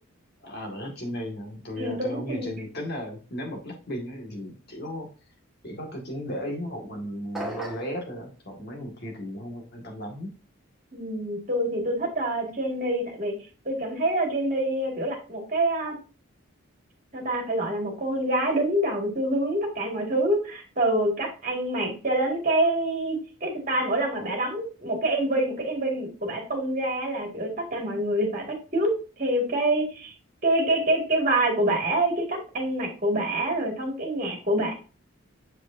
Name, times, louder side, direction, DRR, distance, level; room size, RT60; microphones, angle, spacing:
voice 1, 0.4-5.1 5.6-10.3, equal, 50° left, 1 dB, 2.1 m, -35 dB
voice 2, 1.8-2.5 10.9-13.3 13.7-16.0 17.1-28.9 29.2-30.1 30.4-34.7, right 1 dB, 40° right, 1 dB, 2.2 m, -26 dB
sound 1, 7.3-8.0, right 1 dB, ahead, 1.6 m, -34 dB
7.6 x 5.0 x 2.7 m, 0.35 s
head